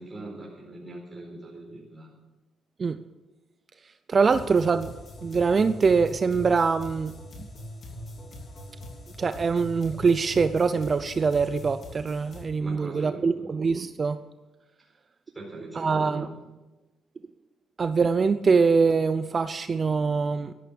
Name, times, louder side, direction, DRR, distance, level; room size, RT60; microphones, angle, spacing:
voice 1, 0.0-2.2 12.6-13.5 15.3-16.4, right 2 dB, 20° right, -4 dB, 4.3 m, -41 dB
voice 2, 4.1-4.9 5.2-7.1 9.2-14.2 15.8-16.3 17.8-20.5, right 5 dB, 40° right, 12 dB, 0.5 m, -23 dB
sound 1, 4.2-12.4, left 1 dB, 45° left, 3.3 m, -42 dB
12.5 x 12.0 x 7.0 m, 1.1 s
cardioid pair, 90°, 0 cm